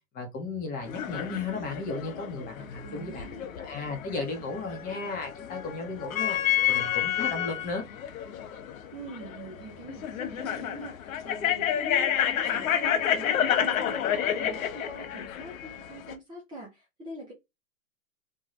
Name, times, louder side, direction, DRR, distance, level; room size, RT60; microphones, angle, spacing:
voice 1, 0.1-3.3 3.6-6.4 6.7-7.8, left 3 dB, 20° left, 0.7 m, -35 dB
sound 1, 0.8-16.1, left 10 dB, 80° left, 0.7 m, -30 dB
voice 2, 2.6-3.4 8.9-17.3, right 2 dB, 15° right, 0.4 m, -44 dB
2.6 x 2.2 x 3.1 m
hypercardioid pair, 130°, 41 cm